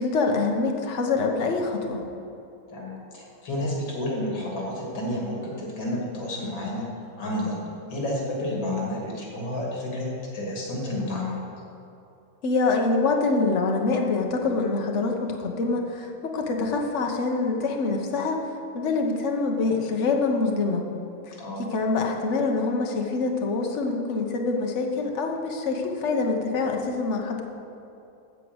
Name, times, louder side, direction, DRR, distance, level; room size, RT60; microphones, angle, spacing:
voice 1, 0.0-2.0 12.4-18.4 18.7-20.8 21.7-27.4, left 3 dB, 45° left, 2 dB, 1.2 m, -25 dB
voice 2, 2.7-6.8 7.2-7.6 7.9-10.1 10.3-11.4 21.4-21.7, left 1 dB, 85° left, -3 dB, 3.1 m, -30 dB
13.5 x 4.6 x 8.0 m, 2.8 s
omnidirectional pair, 2.0 m